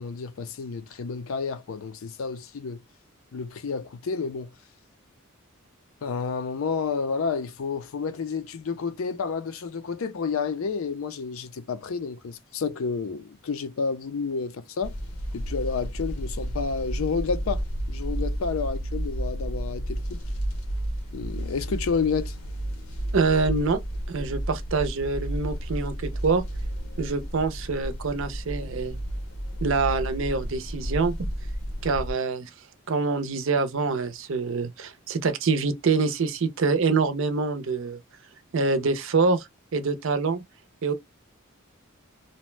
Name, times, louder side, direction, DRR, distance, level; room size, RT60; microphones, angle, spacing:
voice 1, 0.0-2.8 3.3-4.5 6.0-15.0 15.3-20.2 21.1-22.3, left 5 dB, 70° left, 0.5 m, -30 dB
sound 1, 14.8-32.1, right 1 dB, 85° left, 0.8 m, -32 dB
voice 2, 23.1-23.8 24.1-26.4 27.0-29.0 29.6-31.3 31.8-32.5 32.9-38.0 38.5-40.4 40.8-40.9, right 4 dB, 60° right, 0.5 m, -25 dB
2.6 x 2.1 x 3.1 m
head